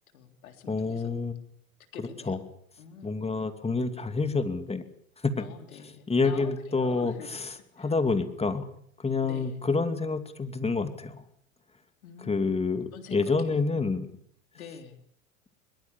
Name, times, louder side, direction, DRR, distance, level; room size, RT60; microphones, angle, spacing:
voice 1, 0.1-1.1 1.9-2.5 2.8-3.5 5.4-7.4 7.8-7.9 9.2-9.6 12.0-12.6 12.9-14.0 14.5-15.0, left 7 dB, 80° left, 7 dB, 3.5 m, -47 dB
voice 2, 0.7-1.3 2.0-2.4 3.0-4.8 5.2-5.4 6.1-7.5 7.8-8.7 9.0-11.2 12.3-14.1, left 4 dB, 15° left, 9 dB, 2.6 m, -28 dB
22.5 x 21.5 x 7.0 m, 0.64 s
hypercardioid pair, 90°, 42 cm